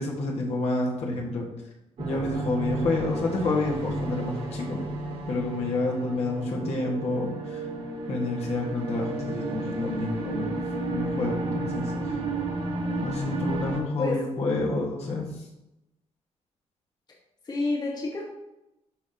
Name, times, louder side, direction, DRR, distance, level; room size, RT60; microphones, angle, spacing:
voice 1, 0.0-1.4 2.0-4.8 5.3-7.6 8.1-10.5 10.9-12.2 13.0-15.3, left 2 dB, 65° left, -2 dB, 1.7 m, -29 dB
sound 1, 2.0-13.8, right 2 dB, 60° right, 1.8 m, -32 dB
voice 2, 17.4-18.2, left 3 dB, 35° left, -3 dB, 1.5 m, -28 dB
12.0 x 4.0 x 2.9 m, 0.91 s
wide cardioid pair, 140°, 11 cm